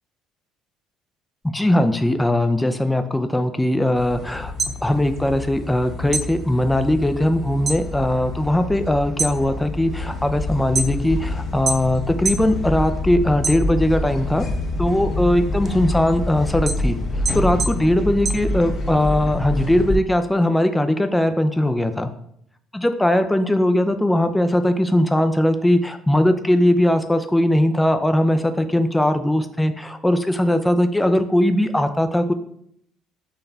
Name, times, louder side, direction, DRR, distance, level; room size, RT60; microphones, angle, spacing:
voice 1, 1.4-14.5 14.8-17.0 17.3-22.1 22.7-32.3, left 1 dB, 10° left, 8 dB, 0.4 m, -20 dB
sound 1, 3.9-19.9, left 2 dB, 45° left, 0.8 m, -27 dB
sound 2, 4.4-5.8 6.1-7.9 8.2-8.7 9.0-11.2 11.7-12.5 12.9-14.1 14.5-19.1, right 3 dB, 45° right, 0.5 m, -28 dB
4.0 x 3.2 x 4.0 m, 0.71 s
hypercardioid pair, 65°, 0 cm